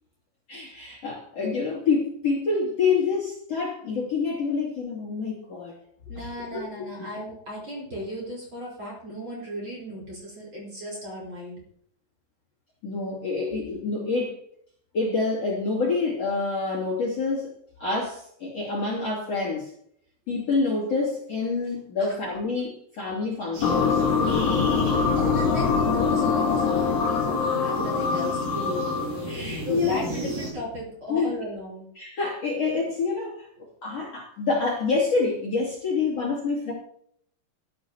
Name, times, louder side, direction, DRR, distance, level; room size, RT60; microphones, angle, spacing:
voice 1, 0.5-5.8 6.2-6.3 6.5-6.6 7.0-7.1 12.8-14.4 14.9-17.5 17.8-19.7 20.3-24.0 29.3-30.0 31.1-31.3 32.0-33.5 33.8-36.7, left 4 dB, 40° left, -3 dB, 3.0 m, -27 dB
voice 2, 6.1-11.6 22.0-22.2 24.2-24.3 25.1-28.9 29.6-31.9, equal, 30° right, -4 dB, 4.3 m, -36 dB
sound 1, 23.5-30.5, right 1 dB, 50° right, 6.2 m, -34 dB
sound 2, 23.6-29.2, left 5 dB, 80° left, 1.4 m, -23 dB
16.0 x 11.0 x 2.9 m, 0.66 s
omnidirectional pair, 5.0 m